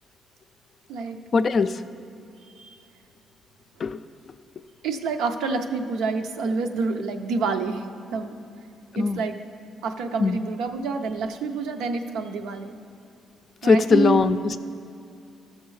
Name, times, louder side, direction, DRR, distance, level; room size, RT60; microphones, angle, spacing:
voice 1, 1.3-1.8 3.8-4.0 8.9-9.2 10.2-10.4 13.6-14.6, left 5 dB, 50° left, 11 dB, 0.3 m, -20 dB
voice 2, 4.8-8.4 8.9-9.4 9.8-12.7 13.6-14.2, right 4 dB, 90° right, 6 dB, 0.5 m, -28 dB
14.0 x 6.5 x 3.2 m, 2.5 s
cardioid pair, 90°, 0 cm